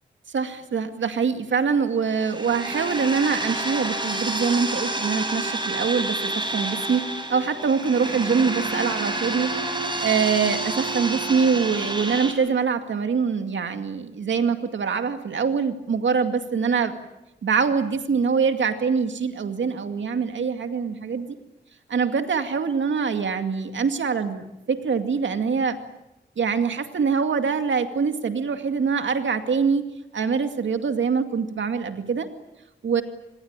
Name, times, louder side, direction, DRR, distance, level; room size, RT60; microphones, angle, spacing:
voice 1, 0.3-7.0 7.3-9.6 10.0-16.9 17.4-21.4 21.9-25.8 26.4-29.8 30.1-32.3 32.8-33.0, right 5 dB, 85° right, 7 dB, 2.2 m, -24 dB
sound 1, 2.0-12.3, right 2 dB, 25° right, 6.4 m, -29 dB
26.0 x 20.5 x 8.9 m, 0.90 s
cardioid pair, 65°, 19 cm